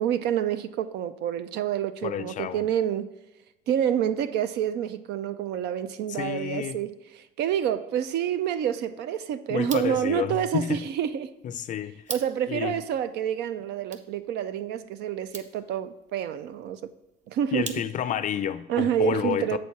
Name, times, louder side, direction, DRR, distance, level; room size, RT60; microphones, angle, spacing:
voice 1, 0.0-3.1 3.7-6.9 7.4-11.3 12.1-16.9 17.3-17.8 18.7-19.6, right 10 dB, 80° right, 0.5 m, -28 dB
voice 2, 2.0-2.7 6.1-6.8 9.5-10.8 11.4-12.0 12.5-12.8 17.5-19.6, left 9 dB, 50° left, 0.4 m, -30 dB
sound 1, 9.5-18.3, right 5 dB, 45° right, 0.8 m, -45 dB
7.6 x 4.2 x 4.6 m
cardioid pair, 110°, 17 cm